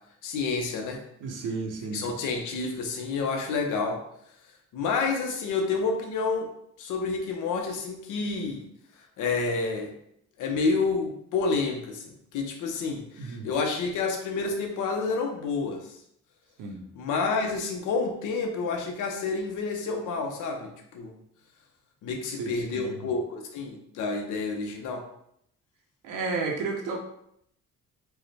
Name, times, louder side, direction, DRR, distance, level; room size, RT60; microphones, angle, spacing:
voice 1, 0.2-1.0 1.9-4.0 4.7-6.5 6.8-8.6 9.2-9.9 10.4-16.0 17.0-21.1 22.0-25.0, left 4 dB, 80° left, 2 dB, 0.7 m, -29 dB
voice 2, 1.2-2.0 13.2-13.5 16.6-16.8 22.1-23.1 26.0-27.0, right 4 dB, 85° right, 2 dB, 0.8 m, -33 dB
4.5 x 2.1 x 3.2 m, 0.73 s
cardioid pair, 90°, 30 cm